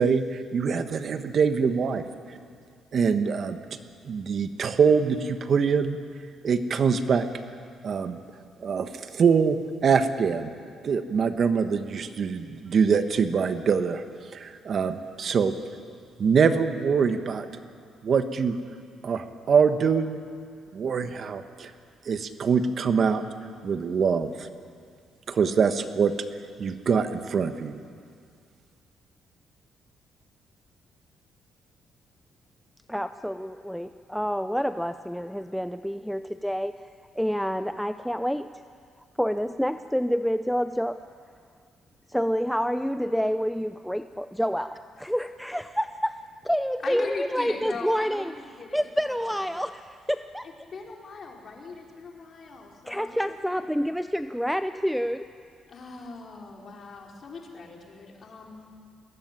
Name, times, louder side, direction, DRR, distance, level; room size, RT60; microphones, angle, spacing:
voice 1, 0.0-2.0 2.9-3.6 4.0-6.0 6.4-7.3 7.8-8.2 8.6-10.5 10.8-14.0 14.3-15.5 16.2-17.5 18.0-18.6 19.0-20.2 20.7-21.7 22.0-23.2 23.6-24.5 25.3-26.1 26.6-27.8, right 6 dB, 55° right, 9 dB, 1.3 m, -24 dB
voice 2, 32.9-36.7 37.1-38.5 39.2-41.0 42.1-48.3 48.7-50.5 52.9-55.3, equal, ahead, 10 dB, 0.6 m, -28 dB
voice 3, 46.8-49.5 50.4-53.7 55.7-58.6, left 4 dB, 50° left, 0 dB, 4.5 m, -40 dB
21.5 x 19.5 x 9.2 m, 2.2 s
cardioid pair, 90°, 0 cm